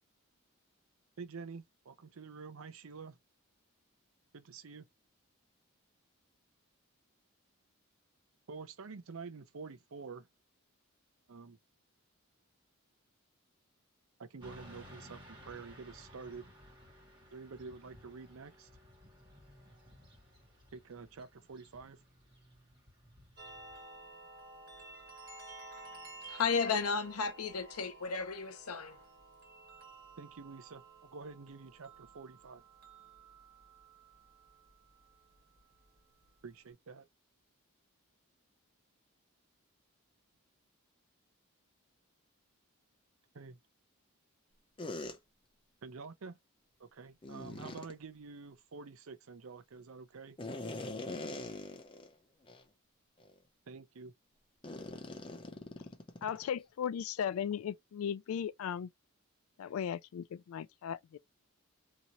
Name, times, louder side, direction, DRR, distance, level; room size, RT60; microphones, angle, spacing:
voice 1, 1.2-3.2 4.3-4.9 8.5-10.3 11.3-11.6 14.2-16.4 17.3-18.7 20.7-22.0 30.2-30.8 31.1-32.6 36.4-37.0 43.3-43.6 45.8-46.4 46.8-50.4 53.7-54.1, right 4 dB, 70° right, 0.6 m, -48 dB
Motorcycle / Traffic noise roadway noise, 14.4-23.8, equal, 20° right, 1.4 m, -57 dB
Chime bell, 23.4-36.7, right 3 dB, 45° right, 1.6 m, -53 dB
voice 2, 26.2-29.1, left 5 dB, 90° left, 0.7 m, -34 dB
sound 1, 44.8-45.1 47.2-47.9 50.4-52.1 52.5-52.6 53.2-53.4 54.6-56.4, left 2 dB, 25° left, 0.6 m, -42 dB
voice 3, 56.2-58.9 59.6-61.2, left 8 dB, 70° left, 0.3 m, -37 dB
2.9 x 2.9 x 2.5 m
head